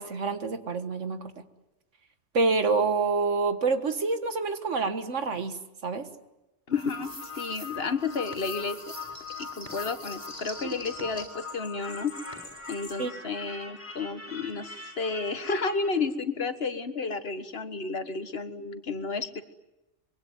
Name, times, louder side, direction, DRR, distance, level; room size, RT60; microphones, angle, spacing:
voice 1, 0.0-1.3 2.3-6.1 13.0-13.1, right 4 dB, 85° right, 9 dB, 1.9 m, -27 dB
voice 2, 6.7-8.8 9.4-12.1 12.7-19.4, left 4 dB, 55° left, 10 dB, 1.6 m, -32 dB
sound 1, 6.7-15.9, left 3 dB, 30° left, 6.9 m, -41 dB
25.0 x 23.5 x 9.4 m, 0.98 s
omnidirectional pair, 1.2 m